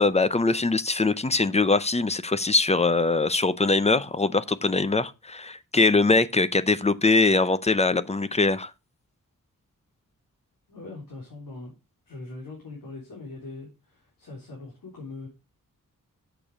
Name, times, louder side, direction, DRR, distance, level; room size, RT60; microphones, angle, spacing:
voice 1, 0.0-8.7, left 3 dB, 20° left, 0.5 m, -22 dB
voice 2, 10.7-11.7 12.1-15.3, left 3 dB, 85° left, 3.8 m, -41 dB
8.6 x 6.9 x 4.9 m
wide cardioid pair, 170°, 33 cm